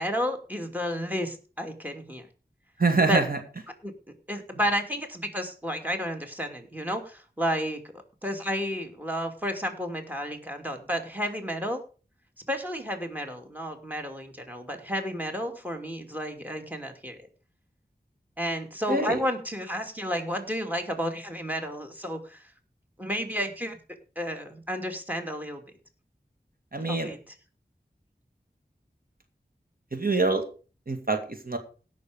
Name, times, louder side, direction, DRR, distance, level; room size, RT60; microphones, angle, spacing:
voice 1, 0.0-2.3 3.1-3.2 3.8-3.9 4.3-7.8 8.2-11.8 12.5-17.2 18.4-22.4 23.0-23.8 24.2-25.6 26.9-27.2, equal, 10° right, 6 dB, 2.6 m, -31 dB
voice 2, 2.8-3.4 18.9-19.2 26.7-27.1 29.9-30.5 30.9-31.6, right 3 dB, 55° right, 6 dB, 2.1 m, -25 dB
17.0 x 6.6 x 5.1 m, 0.37 s
wide cardioid pair, 55°, 17 cm